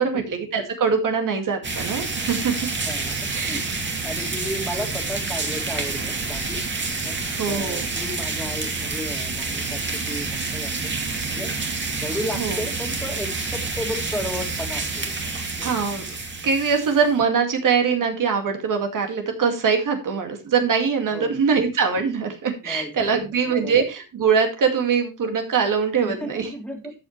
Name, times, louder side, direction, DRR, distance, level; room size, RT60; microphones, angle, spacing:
voice 1, 0.0-2.5 3.3-3.6 7.4-7.9 12.3-12.6 15.6-16.1 16.4-26.5, right 6 dB, 60° right, 5 dB, 2.3 m, -22 dB
sound 1, 1.6-17.2, right 3 dB, 30° right, 2.2 m, -28 dB
voice 2, 2.8-3.1 3.5-3.6 4.0-6.6 7.0-10.9 11.3-11.5 12.0-15.7 21.1-21.4 22.6-23.8 26.0-26.9, equal, 5° left, 2 dB, 2.6 m, -34 dB
13.5 x 7.1 x 3.2 m, 0.27 s
cardioid pair, 130°, 36 cm